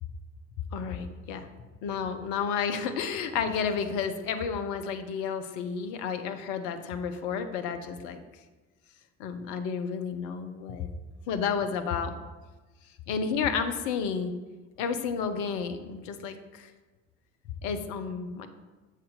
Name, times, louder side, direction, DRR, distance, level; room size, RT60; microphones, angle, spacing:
voice 1, 0.7-1.5 1.8-8.2 9.2-10.9 11.3-12.2 13.1-14.3 14.8-16.7 17.6-18.5, left 6 dB, 55° left, 8 dB, 0.7 m, -31 dB
6.9 x 3.3 x 5.0 m, 1.2 s
figure-of-eight pair, 55°, 38 cm